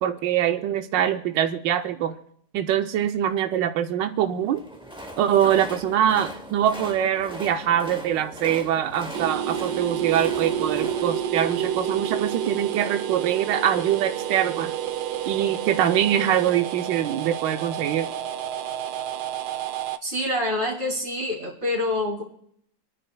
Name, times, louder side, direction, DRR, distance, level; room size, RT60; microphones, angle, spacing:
voice 1, 0.0-2.2 2.5-4.6 5.2-14.7 15.3-18.1, right 10 dB, 90° right, 7 dB, 1.3 m, -23 dB
Train, 4.4-12.5, right 1 dB, 5° right, 0.4 m, -40 dB
sound 1, 9.1-20.0, right 10 dB, 75° right, 1.1 m, -29 dB
voice 2, 20.0-22.2, left 1 dB, 30° right, -2 dB, 2.8 m, -26 dB
27.5 x 10.0 x 2.3 m, 0.70 s
omnidirectional pair, 1.9 m